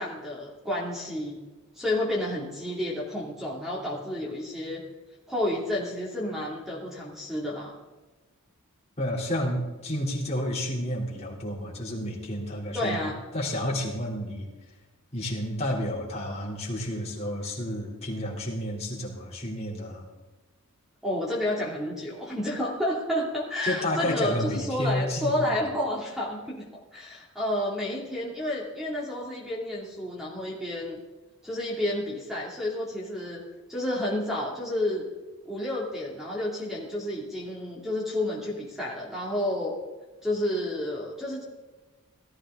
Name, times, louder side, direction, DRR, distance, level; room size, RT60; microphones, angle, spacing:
voice 1, 0.0-1.4 1.7-4.8 5.3-7.7 12.7-13.2 21.0-26.6 26.9-31.0 31.4-33.4 33.7-35.0 35.4-39.7 40.2-41.4, left 1 dB, ahead, -5 dB, 2.5 m, -30 dB
voice 2, 9.0-13.1 13.3-14.5 15.1-20.1 23.6-25.6, equal, 30° left, -3 dB, 3.2 m, -31 dB
18.0 x 13.5 x 3.8 m, 1.2 s
head